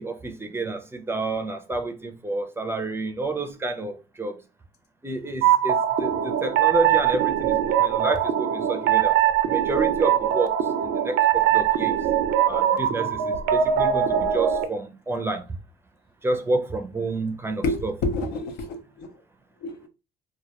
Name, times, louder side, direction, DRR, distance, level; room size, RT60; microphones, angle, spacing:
voice 1, 0.0-4.4 5.0-9.1 9.5-10.5 10.8-11.9 12.5-15.4 16.2-17.9, right 2 dB, 15° right, 0.4 m, -29 dB
sound 1, 5.4-14.7, right 10 dB, 85° right, 0.4 m, -22 dB
voice 2, 17.6-19.1 19.6-19.9, left 2 dB, 80° left, 0.6 m, -29 dB
2.2 x 2.2 x 2.8 m
cardioid pair, 110°, 17 cm